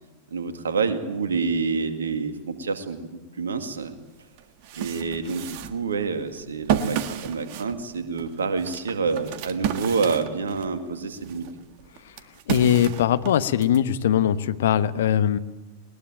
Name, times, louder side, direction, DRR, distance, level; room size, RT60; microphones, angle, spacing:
voice 1, 0.3-3.9 4.7-11.5, right 5 dB, 70° right, 7 dB, 2.2 m, -28 dB
sound 1, 3.8-3.9 4.4-10.8 11.2-13.8, right 9 dB, 45° right, 1.7 m, -31 dB
voice 2, 12.5-15.4, left 10 dB, 60° left, 13 dB, 1.1 m, -21 dB
21.0 x 20.5 x 9.0 m, 1.2 s
figure-of-eight pair, 90°, 0 cm